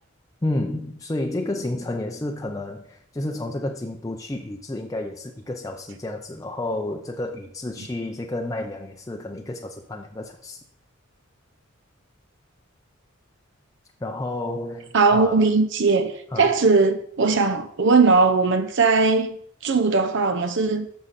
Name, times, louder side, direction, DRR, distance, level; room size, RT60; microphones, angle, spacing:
voice 1, 0.4-10.6 14.0-15.5 16.3-16.5, left 1 dB, 15° left, 0.5 m, -30 dB
voice 2, 14.9-19.4 19.6-20.9, right 4 dB, 60° right, 0.7 m, -19 dB
11.0 x 6.6 x 4.1 m
head